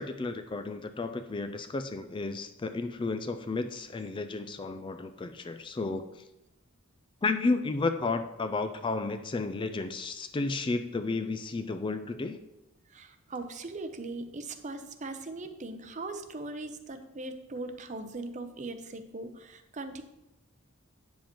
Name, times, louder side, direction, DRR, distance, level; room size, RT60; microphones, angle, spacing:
voice 1, 0.0-6.2 7.2-12.4, left 3 dB, 25° left, 9 dB, 0.3 m, -32 dB
voice 2, 12.9-20.0, right 2 dB, 35° right, 8 dB, 0.6 m, -40 dB
8.7 x 7.4 x 3.0 m, 0.91 s
head